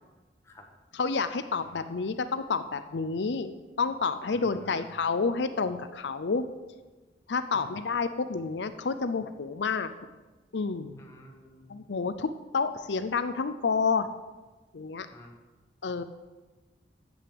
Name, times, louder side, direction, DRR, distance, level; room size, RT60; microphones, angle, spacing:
voice 1, 0.9-3.5 3.8-6.4 7.3-9.9 10.5-11.0 11.7-14.1 14.7-15.1 15.8-16.0, left 4 dB, 80° left, 11 dB, 0.6 m, -29 dB
voice 2, 4.3-5.0 7.5-7.8 11.0-11.7 15.1-15.4, equal, 15° left, 1 dB, 1.5 m, -51 dB
9.9 x 7.8 x 7.6 m, 1.2 s
head